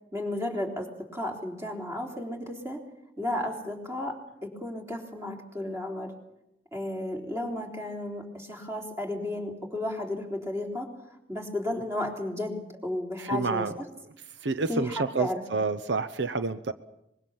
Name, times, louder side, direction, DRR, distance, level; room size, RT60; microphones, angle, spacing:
voice 1, 0.1-2.8 3.2-6.2 6.7-10.9 11.3-13.7 14.7-15.4, left 1 dB, 15° right, 2 dB, 3.7 m, -33 dB
voice 2, 13.2-13.7 14.4-16.7, right 4 dB, 80° right, 10 dB, 0.8 m, -29 dB
24.5 x 22.0 x 7.2 m, 0.83 s
head